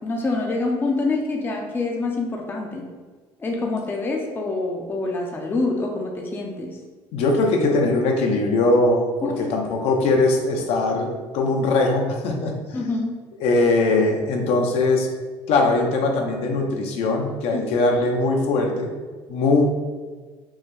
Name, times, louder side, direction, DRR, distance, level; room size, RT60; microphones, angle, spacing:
voice 1, 0.0-2.9 3.4-6.8 9.2-9.5 12.7-13.2 17.5-17.7, left 3 dB, 20° left, 1 dB, 0.5 m, -26 dB
voice 2, 7.1-12.6 13.4-15.1 15.5-18.9 19.3-19.7, left 2 dB, 65° left, 2 dB, 0.7 m, -21 dB
5.5 x 2.1 x 3.1 m, 1.4 s
cardioid pair, 135°, 11 cm